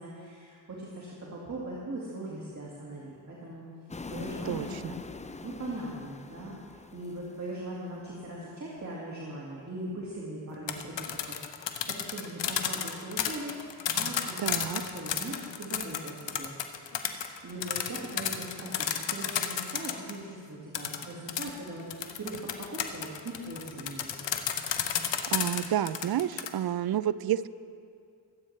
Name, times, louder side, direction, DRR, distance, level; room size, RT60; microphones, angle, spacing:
voice 1, 0.0-3.6 4.0-10.9 11.3-11.4 11.9-16.5 16.9-17.2 17.4-21.9 22.2-24.2, right 1 dB, 40° right, -5 dB, 2.0 m, -40 dB
sound 1, 3.9-8.2, left 3 dB, 15° left, 0.5 m, -43 dB
voice 2, 4.5-4.9 14.4-14.8 25.3-27.5, right 11 dB, 60° right, 16 dB, 0.5 m, -30 dB
sound 2, 10.5-20.2 20.7-26.5, left 9 dB, 80° left, 0.9 m, -32 dB
20.5 x 8.6 x 3.3 m, 2.3 s
cardioid pair, 60°, 43 cm